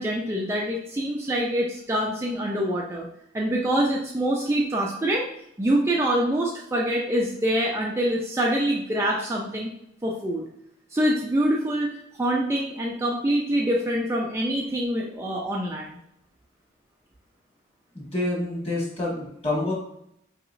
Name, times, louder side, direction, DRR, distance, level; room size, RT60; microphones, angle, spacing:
voice 1, 0.0-3.1 3.3-5.3 5.6-9.7 10.0-10.5 10.9-11.9 12.2-16.0, right 1 dB, 15° right, -2 dB, 0.3 m, -25 dB
voice 2, 17.9-19.7, left 2 dB, 30° left, -5 dB, 1.3 m, -27 dB
4.7 x 2.8 x 2.5 m, 0.76 s
head